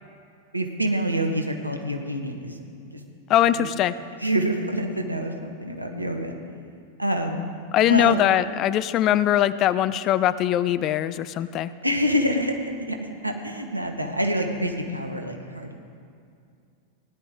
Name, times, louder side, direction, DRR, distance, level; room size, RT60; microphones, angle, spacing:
voice 1, 0.5-2.6 2.8-3.0 3.6-3.7 4.2-6.4 7.0-7.5 7.8-8.2 11.8-13.0 13.2-15.8, equal, 85° right, 4 dB, 1.2 m, -26 dB
voice 2, 3.3-4.0 7.7-11.7, left 12 dB, 35° left, 15 dB, 0.4 m, -21 dB
18.0 x 10.5 x 3.8 m, 2.4 s
figure-of-eight pair, 90°, 0 cm